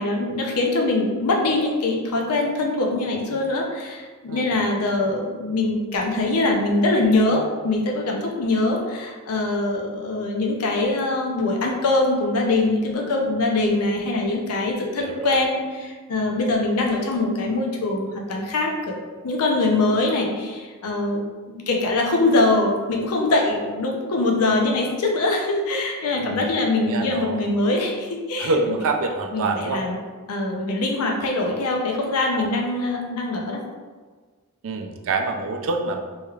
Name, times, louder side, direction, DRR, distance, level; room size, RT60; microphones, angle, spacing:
voice 1, 0.0-19.0 19.2-28.5 29.3-30.0 30.3-33.6, left 2 dB, 85° left, 0 dB, 0.6 m, -23 dB
voice 2, 4.3-4.6 15.0-15.4 26.2-26.5 26.8-27.5 28.4-29.8 32.4-32.6 34.6-36.0, right 3 dB, 65° right, 4 dB, 0.4 m, -26 dB
3.1 x 3.1 x 2.3 m, 1.4 s
head